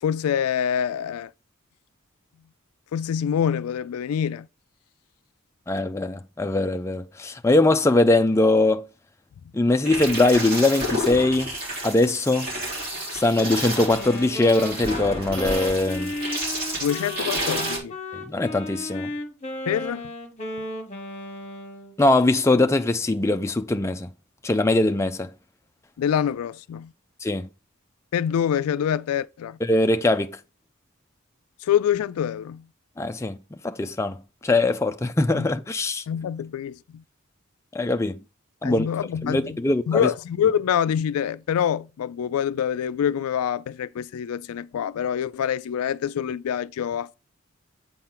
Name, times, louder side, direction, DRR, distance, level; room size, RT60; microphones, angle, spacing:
voice 1, 0.0-1.3 2.9-4.5 16.8-18.0 19.7-20.1 26.0-26.9 28.1-29.6 31.6-32.7 35.3-35.5 36.1-37.0 38.6-39.6 39.9-47.1, left 8 dB, 85° left, 0.3 m, -25 dB
voice 2, 5.7-8.9 9.5-11.5 11.8-12.5 13.1-16.1 18.1-19.1 22.0-24.1 24.4-25.3 27.2-27.5 29.6-30.4 33.0-33.4 33.6-34.2 34.4-36.0 37.7-38.2 38.6-38.9 39.2-40.1, left 2 dB, 15° left, 0.4 m, -21 dB
sound 1, 9.8-17.8, equal, 40° right, 3.4 m, -30 dB
Wind instrument woodwind instrument, 13.7-21.9, left 1 dB, 30° left, 1.2 m, -34 dB
7.5 x 4.3 x 3.8 m
head